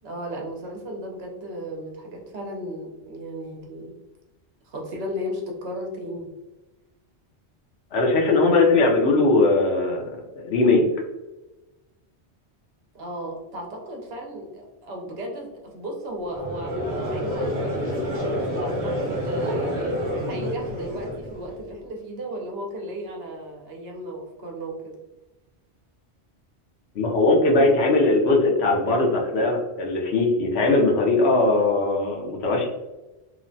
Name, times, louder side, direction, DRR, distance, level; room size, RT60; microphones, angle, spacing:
voice 1, 0.0-3.9 4.6-6.3 8.2-8.7 12.9-15.5 15.7-19.7 20.3-25.0, equal, 70° right, 0 dB, 0.9 m, -35 dB
voice 2, 7.9-10.0 10.3-10.9 26.9-32.7, left 2 dB, 70° left, 0 dB, 0.9 m, -20 dB
Conversation / Crowd, 16.3-21.6, equal, 35° right, 0.8 m, -28 dB
3.0 x 2.1 x 2.5 m, 1.1 s
omnidirectional pair, 1.2 m